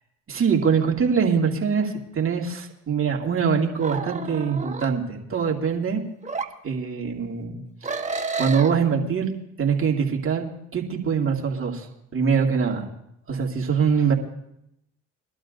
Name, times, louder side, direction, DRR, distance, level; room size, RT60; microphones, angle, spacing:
voice 1, 0.3-6.0 6.6-8.0 8.4-9.3 9.6-10.5 10.7-11.9 12.1-12.9 13.3-14.1, right 6 dB, 35° right, 0 dB, 2.5 m, -23 dB
sound 1, 3.8-4.9 6.2-6.5 7.8-8.7, right 4 dB, 20° right, 1.2 m, -30 dB
22.5 x 12.0 x 2.6 m, 0.80 s
hypercardioid pair, 65°, 36 cm